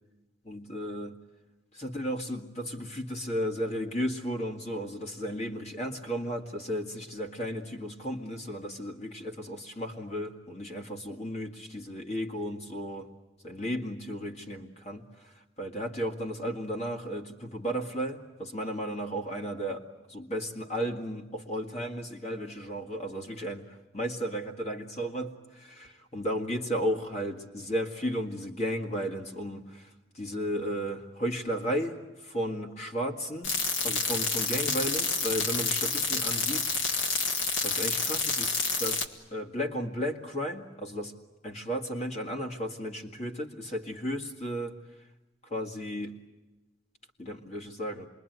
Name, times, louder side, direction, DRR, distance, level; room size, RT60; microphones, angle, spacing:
voice 1, 0.4-1.2 1.7-13.1 13.4-33.5 33.8-36.7 37.6-41.1 41.4-45.1 45.4-46.2 47.2-48.1, equal, 35° left, 2 dB, 2.1 m, -34 dB
sound 1, 33.4-39.1, left 4 dB, 80° left, 2.0 m, -29 dB
27.0 x 22.0 x 9.4 m, 1.1 s
head